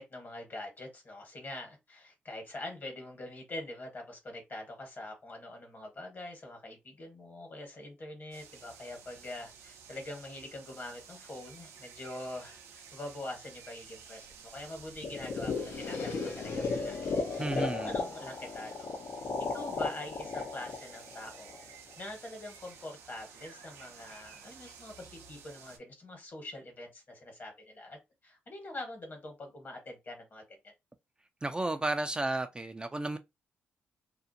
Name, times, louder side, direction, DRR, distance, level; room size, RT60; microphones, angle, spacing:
voice 1, 0.0-18.9 19.4-21.6 22.0-30.4, left 1 dB, 45° left, 1.2 m, -44 dB
sound 1, 8.3-25.8, right 6 dB, 90° right, 0.4 m, -53 dB
sound 2, 15.0-21.9, left 4 dB, 60° left, 0.6 m, -35 dB
voice 2, 17.4-17.9 31.4-33.2, right 2 dB, 20° right, 0.3 m, -32 dB
2.5 x 2.1 x 2.6 m
supercardioid pair, 60°, 5 cm